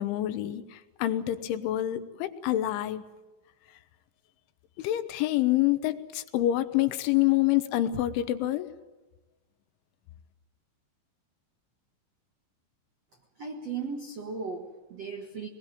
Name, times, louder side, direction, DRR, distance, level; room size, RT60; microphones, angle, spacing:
voice 1, 0.0-3.0 4.8-8.7, left 14 dB, 80° left, 11 dB, 3.2 m, -27 dB
voice 2, 13.4-15.5, right 5 dB, 70° right, 3 dB, 1.5 m, -36 dB
24.0 x 20.5 x 9.1 m, 1.2 s
omnidirectional pair, 5.7 m